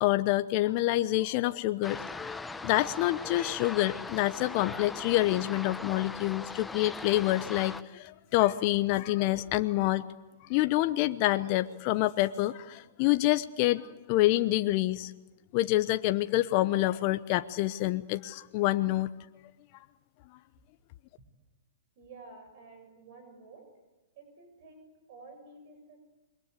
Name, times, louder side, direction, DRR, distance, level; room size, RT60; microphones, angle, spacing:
voice 1, 0.0-2.3 2.6-10.1 10.5-15.1 15.5-19.1, left 16 dB, 45° left, 10 dB, 0.9 m, -27 dB
sound 1, 1.8-7.8, left 3 dB, 10° left, 0.9 m, -40 dB
voice 2, 22.0-23.7 24.2-26.0, right 3 dB, 55° right, 6 dB, 7.4 m, -51 dB
28.0 x 23.0 x 8.3 m, 1.1 s
hypercardioid pair, 115°, 0 cm